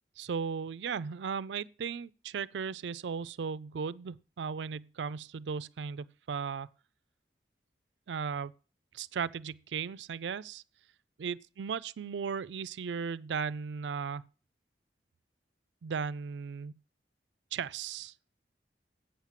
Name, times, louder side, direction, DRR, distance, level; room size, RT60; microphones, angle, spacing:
voice 1, 0.2-6.7 8.1-8.5 8.9-10.6 11.2-14.2 15.8-16.7 17.5-18.1, right 6 dB, 85° right, 0.4 m, -36 dB
8.6 x 7.3 x 7.4 m
head